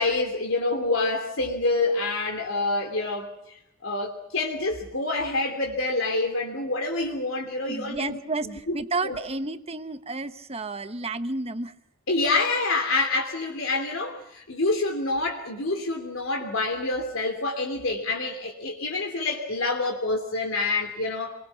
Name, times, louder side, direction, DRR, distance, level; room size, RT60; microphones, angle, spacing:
voice 1, 0.0-8.2 8.4-8.8 9.0-9.2 12.1-21.3, left 2 dB, 70° left, 3.1 m, -27 dB
voice 2, 7.7-11.7, right 3 dB, 30° right, 1.2 m, -31 dB
26.5 x 22.5 x 6.0 m
head